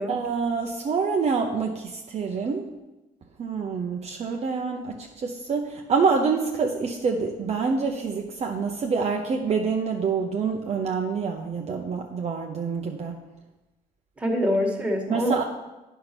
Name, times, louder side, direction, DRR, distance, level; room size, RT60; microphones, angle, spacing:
voice 1, 0.1-2.7 3.4-13.2 15.1-15.4, right 5 dB, 40° right, 2 dB, 0.8 m, -26 dB
voice 2, 14.2-15.4, equal, 5° right, 0 dB, 1.8 m, -25 dB
8.8 x 5.6 x 6.0 m, 1.1 s
cardioid pair, 110°, 17 cm